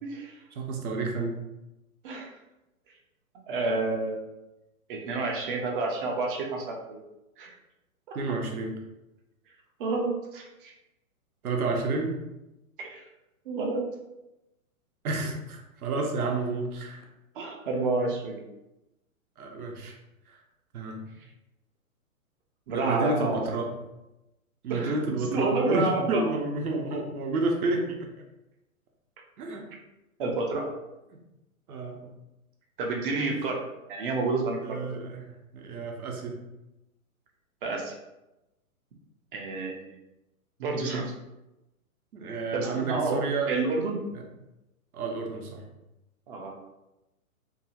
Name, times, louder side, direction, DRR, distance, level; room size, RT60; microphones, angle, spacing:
voice 1, 0.0-0.4 2.0-2.3 3.5-4.3 4.9-7.0 7.4-7.5 8.1-8.2 9.8-10.7 12.8-13.1 13.5-13.8 17.3-18.4 22.7-23.4 24.7-25.0 25.3-26.3 30.2-30.7 32.8-33.6 33.9-34.8 37.6-38.0 39.3-39.8 40.6-41.1 42.3-43.2 43.5-44.0 46.3-46.5, right 3 dB, 40° right, 1 dB, 0.5 m, -29 dB
voice 2, 0.5-1.4 8.1-8.8 11.4-12.1 15.0-17.0 19.4-20.0 20.3-20.4 20.7-21.1 22.7-23.7 24.6-28.1 29.4-29.6 31.7-32.1 34.6-36.4 42.1-43.5 44.9-45.6, right 3 dB, 85° right, 2 dB, 0.8 m, -30 dB
2.8 x 2.3 x 2.7 m, 0.95 s
hypercardioid pair, 135°, 43 cm